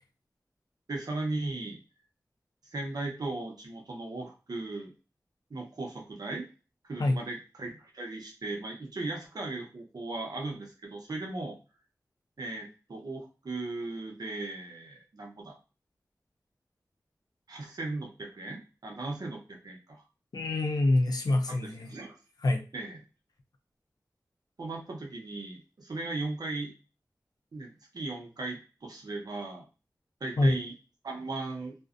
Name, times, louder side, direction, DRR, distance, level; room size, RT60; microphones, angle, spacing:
voice 1, 0.9-1.8 2.7-4.9 5.5-6.5 6.8-11.6 12.4-15.6 17.5-20.0 21.5-22.2 22.7-23.0 24.6-26.7 27.5-29.7 30.2-30.7 31.0-31.8, right 2 dB, 70° right, 1 dB, 0.7 m, -37 dB
voice 2, 20.3-21.9 22.4-22.6 30.4-30.6, left 2 dB, 75° left, 4 dB, 0.5 m, -26 dB
2.5 x 2.1 x 2.4 m, 0.33 s
wide cardioid pair, 50°, 7 cm